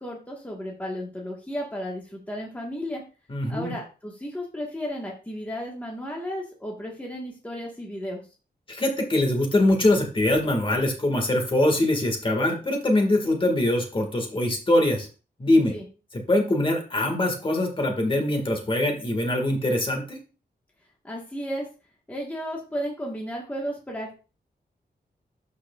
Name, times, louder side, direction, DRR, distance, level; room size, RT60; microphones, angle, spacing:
voice 1, 0.0-3.0 3.5-8.2 15.7-15.9 21.0-21.7 22.1-24.1, equal, 10° left, -2 dB, 1.3 m, -33 dB
voice 2, 3.3-3.7 8.7-15.1 15.4-15.7 16.1-20.2, left 1 dB, 30° left, 2 dB, 1.7 m, -23 dB
12.0 x 4.7 x 2.3 m, 0.34 s
wide cardioid pair, 165°, 17 cm